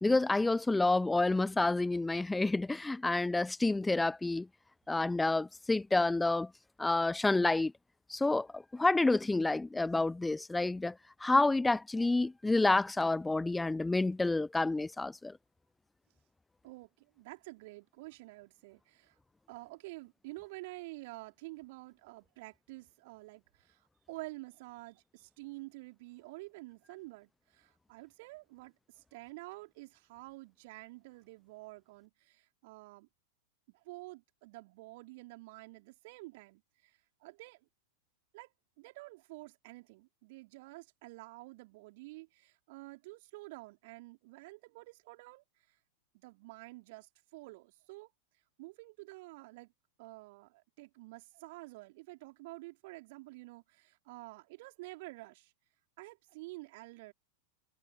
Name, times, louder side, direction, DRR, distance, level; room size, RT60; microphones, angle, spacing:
voice 1, 0.0-4.5 4.9-6.5 6.8-7.7 8.1-15.4, left 2 dB, 10° left, 0.3 m, -29 dB
voice 2, 16.6-19.2 19.5-33.1 33.7-37.7 38.3-38.5 38.8-45.4 46.1-48.1 48.6-49.7 50.0-55.5 56.0-57.1, right 22 dB, 50° right, 3.9 m, -49 dB
figure-of-eight pair, 90°, 0 cm